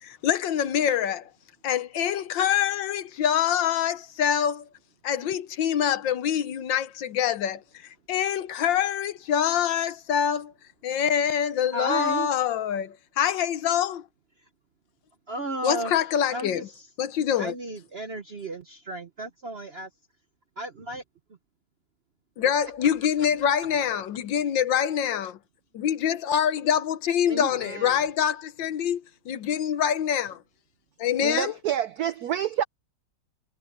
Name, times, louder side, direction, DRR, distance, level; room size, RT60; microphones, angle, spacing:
voice 1, 0.0-1.3 1.6-4.6 5.0-10.5 10.8-14.0 15.6-16.6 17.0-17.5 22.4-25.4 25.7-30.4 31.0-31.5, left 9 dB, 65° left, 1.5 m, -25 dB
voice 2, 11.7-12.3 15.3-16.9 17.4-19.9 20.6-21.0 27.3-28.1, right 2 dB, 45° right, 0.8 m, -34 dB
voice 3, 31.2-32.6, right 10 dB, 85° right, 0.8 m, -27 dB
omnidirectional pair, 2.3 m